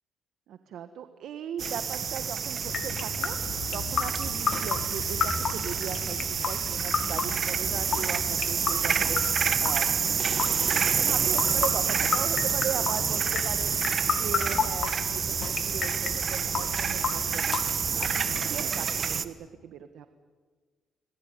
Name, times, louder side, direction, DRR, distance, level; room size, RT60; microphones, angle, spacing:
voice 1, 0.5-3.4 3.7-9.9 10.7-13.8 14.1-15.3 15.6-17.6 18.0-20.1, right 9 dB, 80° right, 9 dB, 1.4 m, -38 dB
sound 1, 1.6-19.2, right 7 dB, 50° right, 1.4 m, -28 dB
sound 2, 2.6-18.5, left 6 dB, 60° left, 2.3 m, -33 dB
26.0 x 19.5 x 9.7 m, 1.5 s
cardioid pair, 90°, 0 cm